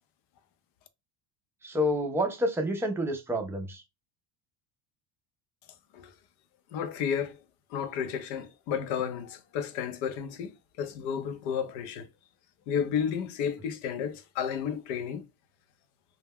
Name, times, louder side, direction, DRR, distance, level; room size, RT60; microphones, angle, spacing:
voice 1, 1.6-3.8, equal, 5° right, 0.4 m, -28 dB
voice 2, 6.7-7.4 7.7-12.1 12.7-15.2, left 8 dB, 75° left, 0.6 m, -32 dB
2.3 x 2.1 x 3.4 m
supercardioid pair, 115°, 47 cm